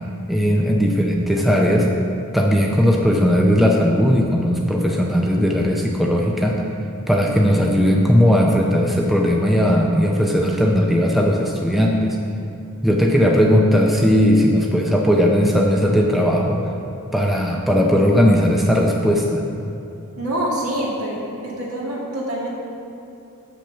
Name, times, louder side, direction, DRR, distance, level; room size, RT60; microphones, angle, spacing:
voice 1, 0.3-1.9 2.3-6.6 7.1-12.2 12.8-16.6 17.1-19.4, equal, ahead, -1 dB, 0.5 m, -17 dB
voice 2, 20.2-22.5, right 1 dB, 70° right, -4 dB, 2.0 m, -26 dB
6.0 x 5.9 x 6.9 m, 2.8 s
head